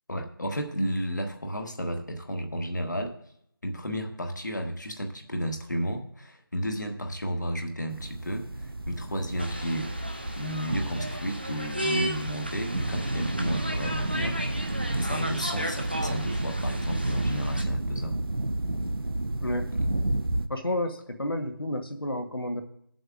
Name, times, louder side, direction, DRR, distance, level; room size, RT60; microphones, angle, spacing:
voice 1, 0.1-3.1 3.6-9.9 10.4-14.6 14.9-18.1 19.7-19.9, equal, 50° left, 4 dB, 1.4 m, -33 dB
sound 1, 7.9-20.5, right 1 dB, 80° right, 0.6 m, -31 dB
sound 2, 9.4-17.6, equal, 25° right, 0.6 m, -35 dB
voice 2, 20.5-22.6, left 1 dB, 80° left, 6 dB, 1.3 m, -30 dB
19.0 x 7.8 x 2.5 m, 0.72 s
figure-of-eight pair, 175°, 12 cm